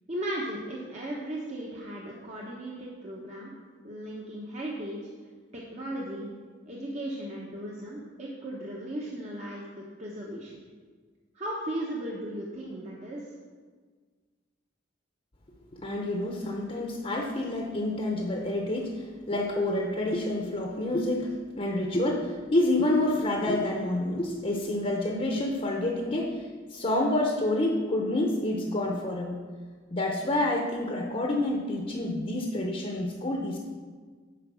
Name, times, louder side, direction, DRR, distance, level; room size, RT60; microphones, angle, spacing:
voice 1, 0.1-3.5 3.8-5.1 5.5-6.3 6.7-10.6 11.3-13.3, right 1 dB, 35° right, -3 dB, 1.0 m, -36 dB
voice 2, 15.8-26.4 26.7-29.4 29.9-33.6, left 1 dB, 30° left, 0 dB, 0.9 m, -28 dB
10.0 x 4.7 x 6.2 m, 1.5 s
head